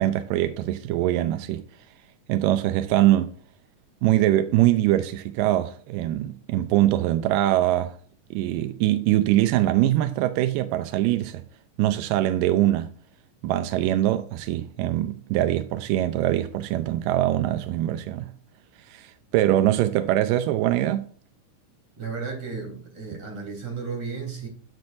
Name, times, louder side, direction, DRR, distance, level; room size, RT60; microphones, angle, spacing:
voice 1, 0.0-1.7 2.3-3.3 4.0-8.0 8.3-11.4 11.8-12.9 13.4-18.3 18.9-21.1, right 14 dB, 90° right, 2.3 m, -23 dB
voice 2, 22.0-24.5, right 5 dB, 45° right, 4.4 m, -33 dB
11.5 x 6.2 x 2.5 m
omnidirectional pair, 3.8 m